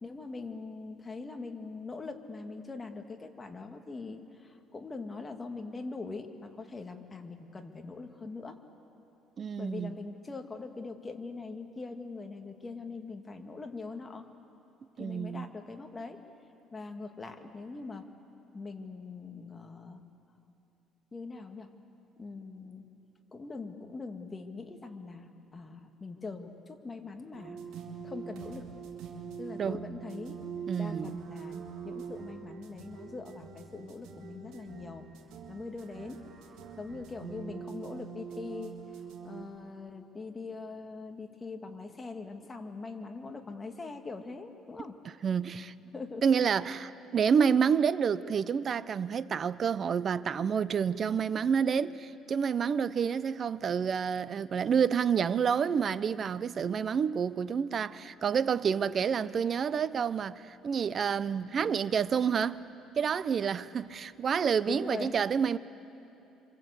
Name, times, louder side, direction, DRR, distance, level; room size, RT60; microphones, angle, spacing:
voice 1, 0.0-8.6 9.6-14.3 15.0-16.2 16.7-18.1 18.5-20.0 21.1-21.7 22.2-22.8 23.3-27.6 28.0-28.7 29.4-30.4 30.8-35.1 35.5-36.2 36.8-38.8 39.2-45.0 45.9-46.3 64.7-65.1, left 3 dB, 20° left, 2.0 m, -42 dB
voice 2, 9.4-10.0 15.0-15.5 29.6-29.8 30.7-31.1 45.0-45.7 46.2-62.6 63.0-65.6, right 7 dB, 40° right, 0.7 m, -29 dB
sound 1, 27.3-39.4, right 7 dB, 75° right, 3.4 m, -44 dB
26.5 x 26.0 x 8.3 m
cardioid pair, 120°, 0 cm